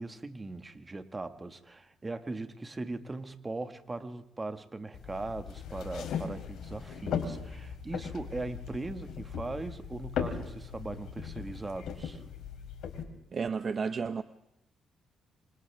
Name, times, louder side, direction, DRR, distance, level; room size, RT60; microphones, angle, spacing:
voice 1, 0.0-12.2, right 2 dB, 20° right, 1.9 m, -39 dB
sound 1, 4.9-13.0, left 7 dB, 75° left, 3.9 m, -38 dB
voice 2, 13.3-14.2, right 5 dB, 45° right, 0.8 m, -32 dB
28.0 x 25.5 x 3.6 m
cardioid pair, 90°, 0 cm